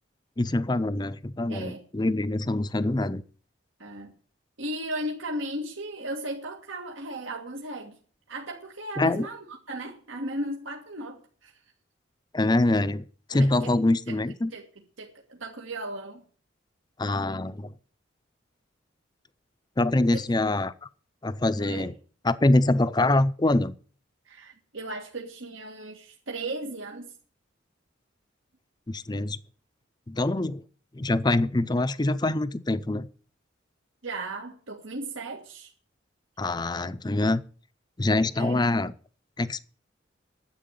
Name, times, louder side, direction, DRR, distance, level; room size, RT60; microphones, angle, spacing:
voice 1, 0.4-3.2 9.0-9.3 12.3-13.0 13.3-14.5 17.0-17.7 19.8-20.7 21.2-21.9 22.2-23.7 28.9-29.4 30.1-30.6 30.9-33.1 36.4-37.4 38.0-38.9 39.4-39.6, left 2 dB, 20° left, 15 dB, 0.5 m, -24 dB
voice 2, 1.5-1.8 3.8-4.1 4.6-8.0 8.3-11.5 13.3-13.7 14.1-14.2 14.5-14.6 15.0-16.2 20.1-20.2 21.6-21.9 24.3-27.1 34.0-35.7 38.4-38.8, right 1 dB, 85° right, 1 dB, 1.8 m, -36 dB
10.5 x 7.8 x 9.1 m, 0.43 s
head